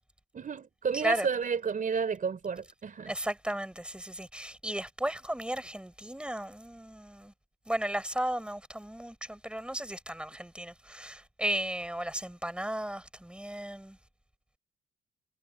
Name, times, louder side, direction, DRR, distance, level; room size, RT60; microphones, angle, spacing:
voice 1, 0.3-3.1, right 6 dB, 45° right, 4.0 m, -31 dB
voice 2, 0.9-1.3 3.1-7.3 7.7-14.0, right 1 dB, 5° right, 7.5 m, -35 dB
cardioid pair, 90°, 20 cm